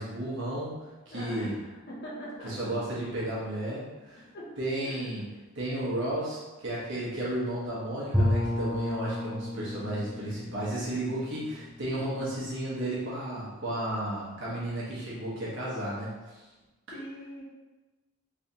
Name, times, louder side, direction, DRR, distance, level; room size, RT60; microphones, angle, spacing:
voice 1, 0.0-1.6 2.4-4.2 4.6-5.2 5.5-16.4, right 1 dB, 55° right, -7 dB, 1.2 m, -33 dB
voice 2, 1.1-1.6 1.9-2.5 4.3-4.5 4.8-5.0 11.9-12.3 16.9-17.4, equal, 45° left, -5 dB, 1.0 m, -41 dB
Bowed string instrument, 8.1-12.9, left 1 dB, 5° right, 0.6 m, -32 dB
3.5 x 3.2 x 2.7 m, 1.2 s
head